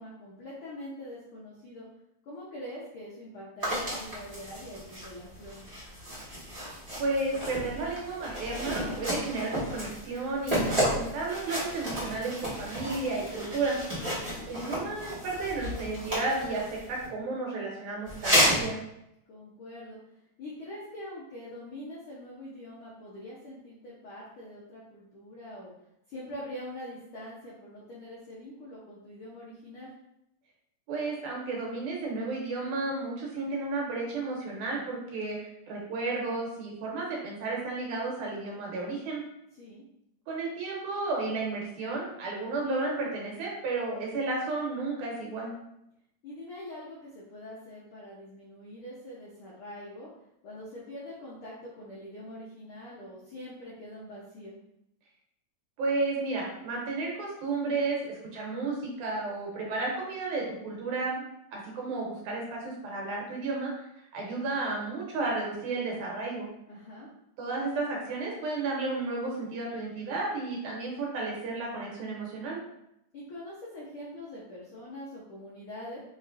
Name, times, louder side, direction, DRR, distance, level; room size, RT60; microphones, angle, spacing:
voice 1, 0.0-1.9 2.2-5.6 14.1-14.5 19.3-20.0 20.4-25.7 26.1-29.9 39.6-39.8 46.2-50.1 50.4-54.6 66.7-67.1 73.1-76.0, left 1 dB, 80° left, -6 dB, 1.2 m, -44 dB
sound 1, 3.6-17.1 18.1-18.7, equal, 20° right, 0.9 m, -32 dB
voice 2, 7.0-13.8 14.5-16.6 16.9-18.8 30.9-39.2 40.3-45.5 55.8-61.3 61.5-63.7 64.0-66.5 67.4-72.6, right 3 dB, 85° right, -2 dB, 2.5 m, -32 dB
5.3 x 3.1 x 2.5 m, 0.81 s
omnidirectional pair, 3.4 m